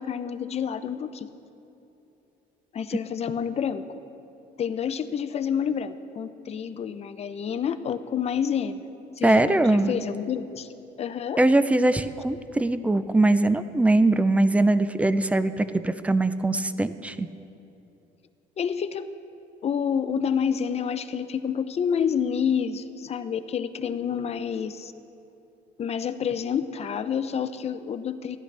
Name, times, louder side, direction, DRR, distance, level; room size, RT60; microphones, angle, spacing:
voice 1, 0.0-1.3 2.7-3.8 4.6-8.8 9.2-10.7 11.0-11.4 18.6-19.1 19.6-24.9 25.8-28.4, left 7 dB, 40° left, 11 dB, 0.6 m, -28 dB
voice 2, 9.2-9.9 11.4-17.3, right 2 dB, 10° right, 12 dB, 0.4 m, -21 dB
15.5 x 11.5 x 3.3 m, 2.9 s
cardioid pair, 110°, 17 cm